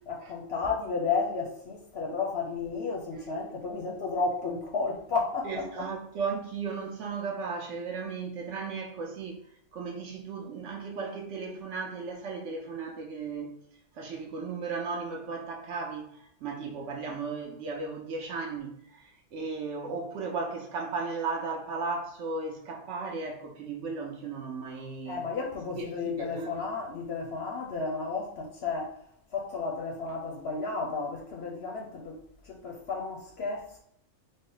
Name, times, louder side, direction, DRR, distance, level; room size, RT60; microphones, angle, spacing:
voice 1, 0.1-5.9 25.1-29.0 29.3-32.2 32.5-33.8, left 4 dB, 60° left, 0.7 m, -32 dB
voice 2, 5.4-9.4 9.7-13.5 13.9-25.2 25.8-26.6, right 4 dB, 65° right, 0.9 m, -35 dB
3.6 x 2.0 x 3.7 m
omnidirectional pair, 1.5 m